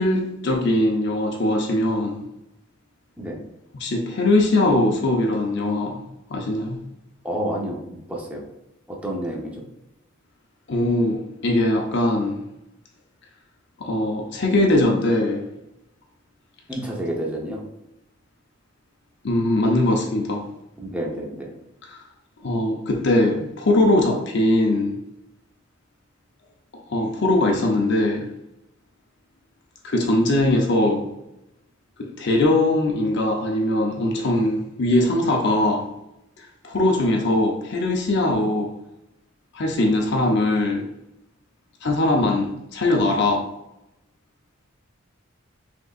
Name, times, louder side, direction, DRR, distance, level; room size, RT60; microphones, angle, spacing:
voice 1, 0.0-2.3 3.7-6.0 6.3-6.8 10.7-12.4 13.8-15.4 19.2-20.4 21.8-22.0 22.4-25.0 26.9-28.3 29.8-31.1 32.0-35.9 36.4-38.7 39.5-40.9 41.8-43.5, left 1 dB, 60° left, 0 dB, 0.6 m, -21 dB
voice 2, 7.2-8.4 8.9-9.6 16.7-17.6 20.8-21.5, right 1 dB, 5° right, -2 dB, 0.8 m, -29 dB
5.2 x 3.5 x 2.4 m, 0.86 s
head